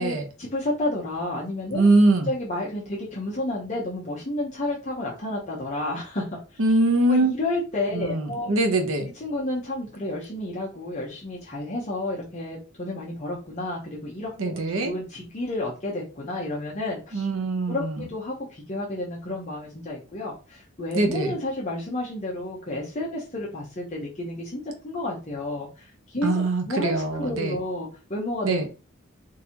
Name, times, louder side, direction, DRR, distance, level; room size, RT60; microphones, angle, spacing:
voice 1, 0.0-1.9 2.3-6.3 6.5-6.6 7.1-8.5 9.1-17.2 17.7-28.7, left 2 dB, 35° left, 0.8 m, -31 dB
voice 2, 1.7-2.3 6.6-7.3 7.9-9.1 14.4-14.9 17.1-18.1 20.9-21.4 26.2-27.6 28.4-28.7, right 2 dB, 85° right, 0.8 m, -22 dB
3.8 x 2.7 x 2.8 m
head